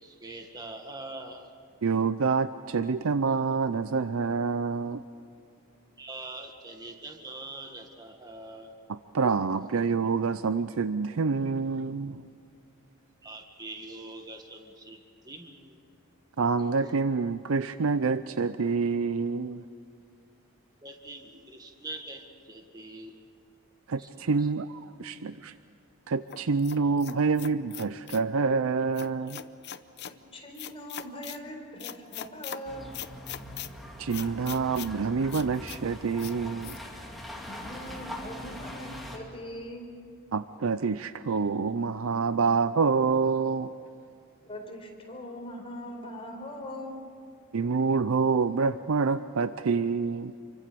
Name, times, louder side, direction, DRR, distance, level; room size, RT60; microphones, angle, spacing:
voice 1, 0.0-1.5 6.0-8.8 13.2-15.8 20.8-23.2 23.9-24.5, right 2 dB, 20° right, 3 dB, 1.7 m, -43 dB
voice 2, 1.8-5.0 8.9-12.2 16.4-19.6 23.9-25.5 26.1-29.4 34.0-36.8 40.3-43.7 47.5-50.3, right 4 dB, 70° right, 13 dB, 0.5 m, -27 dB
sound 1, 26.3-28.3 28.9-30.2 30.6-31.4 31.8-32.6 32.9-33.7 34.1-34.9 35.3-35.8 36.2-36.3 36.6-36.8, left 10 dB, 50° left, 0.8 m, -40 dB
voice 3, 30.3-32.9 37.4-39.9 44.5-47.0, equal, 25° left, 1 dB, 4.3 m, -41 dB
sound 2, 32.6-39.2, left 1 dB, ahead, 2.8 m, -42 dB
27.5 x 24.5 x 6.9 m, 2.4 s
head